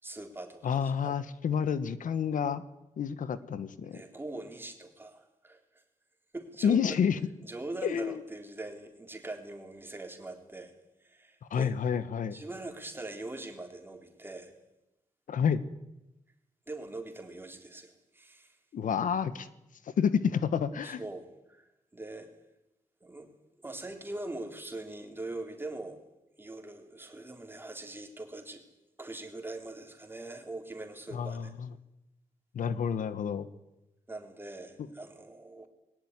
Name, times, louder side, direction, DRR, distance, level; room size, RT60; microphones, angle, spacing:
voice 1, 0.0-1.2 3.8-5.8 6.3-6.8 7.4-10.7 11.0-11.7 12.3-14.5 16.7-18.6 20.8-22.3 23.0-23.3 23.6-26.0 26.4-28.6 29.0-31.5 34.1-35.7, right 2 dB, 15° right, 4 dB, 3.5 m, -42 dB
voice 2, 0.6-2.6 3.0-4.0 6.6-7.2 7.8-8.1 11.5-12.4 15.3-15.6 18.7-19.5 20.0-21.0 31.1-31.7 32.5-33.5, left 7 dB, 80° left, 14 dB, 1.3 m, -29 dB
20.5 x 18.0 x 9.7 m, 0.92 s
wide cardioid pair, 125°, 13 cm